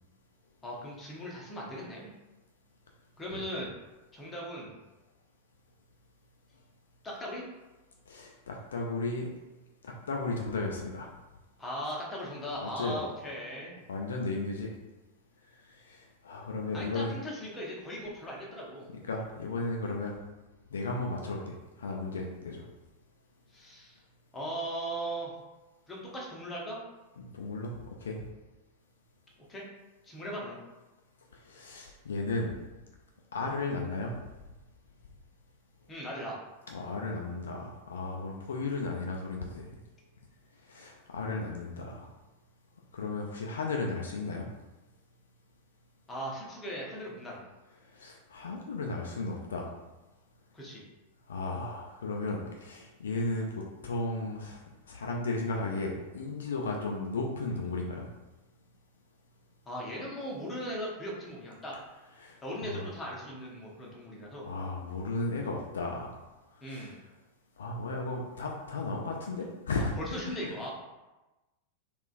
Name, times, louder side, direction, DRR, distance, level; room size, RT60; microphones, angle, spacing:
voice 1, 0.6-2.1 3.2-3.7 4.1-4.8 7.0-7.4 11.6-13.7 16.7-18.9 23.5-24.0 24.3-25.3 25.9-26.8 29.5-29.7 30.0-30.6 35.9-36.4 46.1-47.4 50.5-50.8 59.6-61.7 62.4-64.5 66.6-66.9 70.0-70.7, equal, 15° left, -4 dB, 0.8 m, -38 dB
voice 2, 8.1-9.3 10.1-11.1 12.6-13.0 13.9-14.7 15.7-17.1 19.1-20.1 20.7-22.6 27.2-27.7 28.0-28.2 31.4-32.5 33.3-34.2 36.7-39.7 40.7-42.1 42.9-44.5 47.9-49.7 51.3-58.1 62.2-62.9 64.4-66.2 66.6-67.0 67.6-70.4, left 3 dB, 65° left, 0 dB, 0.3 m, -35 dB
3.6 x 2.3 x 2.4 m, 1.1 s
figure-of-eight pair, 90°, 0 cm